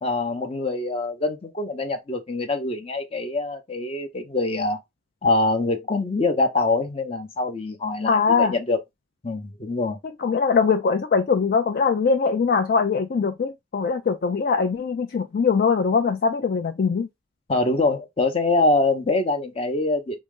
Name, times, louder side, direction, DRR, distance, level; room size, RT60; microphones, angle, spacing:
voice 1, 0.0-4.8 5.2-8.8 9.2-10.0 17.5-20.2, left 2 dB, 30° left, 0.7 m, -24 dB
voice 2, 8.1-8.5 10.2-17.1, left 5 dB, 50° left, 0.4 m, -21 dB
3.7 x 2.0 x 3.6 m
head